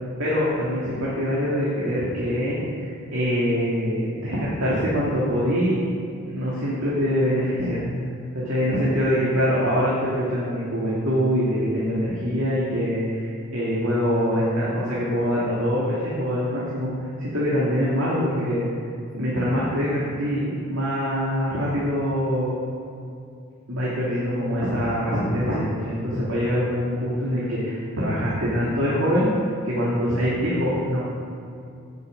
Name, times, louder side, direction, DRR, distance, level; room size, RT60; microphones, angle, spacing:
voice 1, 0.2-5.8 6.2-7.8 8.4-16.9 17.2-18.6 19.1-22.5 23.7-29.3 29.6-31.0, equal, 70° right, -8 dB, 2.5 m, -24 dB
16.5 x 5.9 x 5.2 m, 2.5 s
head